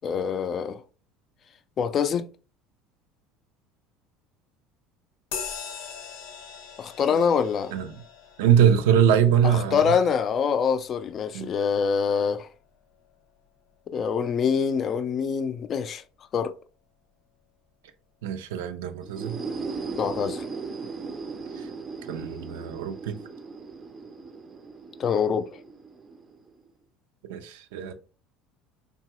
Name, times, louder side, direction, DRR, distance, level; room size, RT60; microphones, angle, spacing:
voice 1, 0.0-0.8 1.8-2.3 6.8-7.7 9.5-12.5 13.9-16.0 16.3-16.5 20.0-20.5 25.0-25.6, left 6 dB, 40° left, 0.3 m, -25 dB
sound 1, 5.3-13.2, left 6 dB, 85° left, 0.6 m, -42 dB
voice 2, 7.7-8.0 8.4-10.0 11.3-11.5 18.2-19.4 21.6-21.7 22.1-23.2 27.3-27.9, right 9 dB, 85° right, 0.4 m, -23 dB
sound 2, 19.0-26.7, right 4 dB, 25° right, 0.4 m, -37 dB
2.8 x 2.3 x 2.9 m
supercardioid pair, 100°, 0 cm